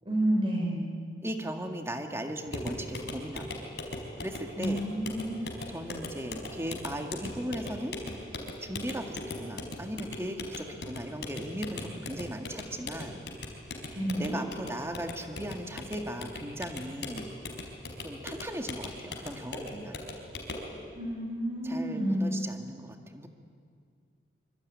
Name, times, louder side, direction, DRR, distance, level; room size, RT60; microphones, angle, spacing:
voice 1, 0.1-0.8 4.6-5.4 13.9-14.3 20.9-22.3, right 1 dB, 30° right, 0 dB, 5.5 m, -29 dB
voice 2, 1.2-3.6 4.2-4.9 5.7-8.0 8.6-13.2 14.2-17.3 18.0-20.0 21.6-23.3, right 1 dB, 15° right, 4 dB, 2.0 m, -37 dB
sound 1, 2.5-20.7, left 2 dB, 70° left, 4.7 m, -40 dB
25.5 x 24.5 x 9.6 m, 2.1 s
head